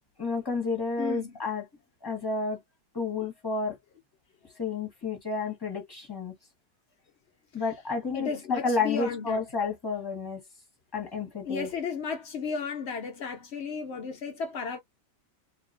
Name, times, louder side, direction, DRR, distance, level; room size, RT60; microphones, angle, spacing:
voice 1, 0.2-1.6 2.0-2.6 2.9-3.7 4.6-6.3 7.5-10.4 10.9-11.7, left 4 dB, 15° left, 1.4 m, -30 dB
voice 2, 1.0-1.4 7.6-7.7 8.1-9.4 11.4-14.8, left 5 dB, 80° left, 0.5 m, -34 dB
2.9 x 2.9 x 2.6 m
omnidirectional pair, 1.9 m